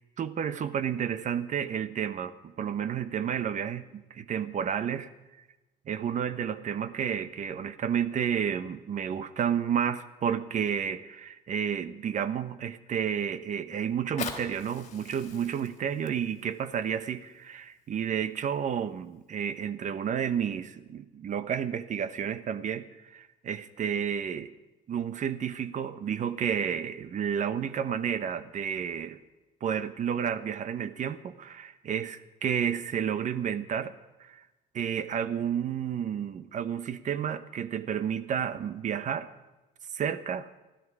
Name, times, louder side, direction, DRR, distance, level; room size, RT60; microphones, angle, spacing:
voice 1, 0.2-5.1 5.9-24.5 24.9-29.2 29.6-34.4 34.7-39.3 39.9-40.5, right 8 dB, 45° right, 14 dB, 1.1 m, -31 dB
Fire, 13.9-18.9 19.5-19.6, left 6 dB, 45° left, 3.4 m, -43 dB
20.0 x 14.0 x 4.9 m, 1.1 s
cardioid pair, 110°, 17 cm